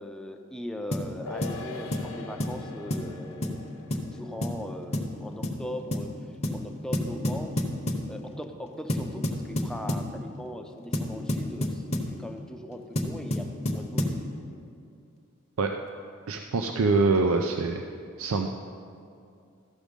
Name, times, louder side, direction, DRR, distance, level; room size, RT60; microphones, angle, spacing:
voice 1, 0.0-3.7 4.0-6.1 6.5-7.6 8.1-14.1, equal, 5° left, 4 dB, 0.5 m, -39 dB
sound 1, 0.9-1.1 1.4-1.6 1.9-2.1 2.4-2.6 2.9-3.1 3.4-3.6 3.9-4.1 4.4-4.6 4.9-5.1 5.4-5.6 5.9-6.1 6.4-6.6 6.9-8.1 8.9-10.1 10.9-12.1 13.0-14.2, left 1 dB, 30° left, 0.8 m, -29 dB
sound 2, 1.3-7.9 8.2-8.3, left 3 dB, 70° left, 1.0 m, -44 dB
voice 2, 16.3-17.8 18.2-18.5, right 3 dB, 85° right, 4 dB, 0.5 m, -24 dB
14.0 x 6.2 x 5.1 m, 2.5 s
head